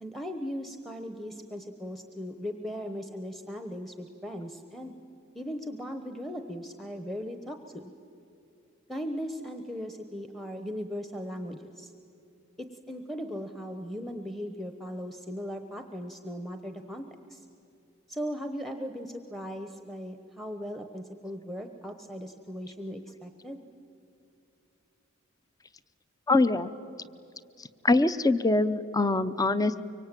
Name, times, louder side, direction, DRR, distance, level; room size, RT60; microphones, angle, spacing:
voice 1, 0.0-4.9 5.3-7.9 8.9-11.9 12.6-17.0 17.3-17.4 18.1-23.6, equal, ahead, 6 dB, 1.0 m, -38 dB
voice 2, 26.3-26.7 27.8-29.8, left 2 dB, 15° left, 14 dB, 0.6 m, -23 dB
24.5 x 24.0 x 9.1 m, 2.6 s
head